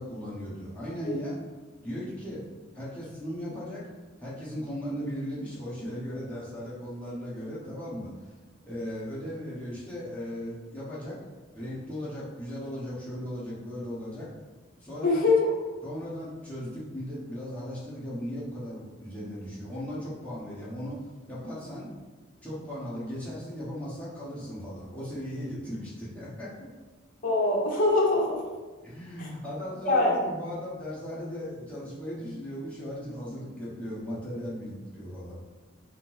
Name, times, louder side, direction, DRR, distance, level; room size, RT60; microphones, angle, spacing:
voice 1, 0.0-1.4 1.8-2.4 2.7-3.8 4.2-8.3 8.6-11.2 11.5-14.3 14.8-15.3 15.8-21.0 21.3-21.9 22.4-26.7 28.8-35.4, equal, 5° left, -8 dB, 1.1 m, -37 dB
voice 2, 15.0-15.5 27.2-28.4 29.2-29.3 29.8-30.2, left 2 dB, 45° left, -3 dB, 0.8 m, -23 dB
5.1 x 2.0 x 4.1 m, 1.3 s
head